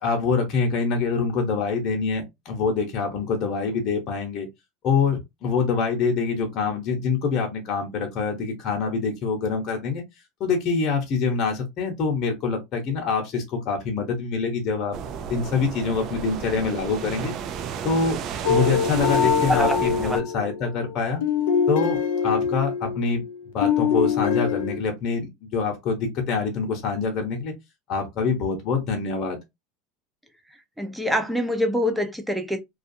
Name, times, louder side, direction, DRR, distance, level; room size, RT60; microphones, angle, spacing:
voice 1, 0.0-4.5 4.8-10.0 10.4-14.9 15.3-17.3 17.8-18.2 18.5-21.2 21.7-23.2 23.5-27.5 27.9-29.4, left 5 dB, 45° left, 1.0 m, -25 dB
sound 1, 14.9-20.2, right 7 dB, 50° right, 0.4 m, -33 dB
sound 2, 18.4-23.3 23.6-24.8, left 7 dB, 80° left, 0.5 m, -24 dB
voice 2, 19.5-20.2 30.8-32.6, equal, 5° right, 0.7 m, -25 dB
2.4 x 2.3 x 2.6 m
supercardioid pair, 105°, 0 cm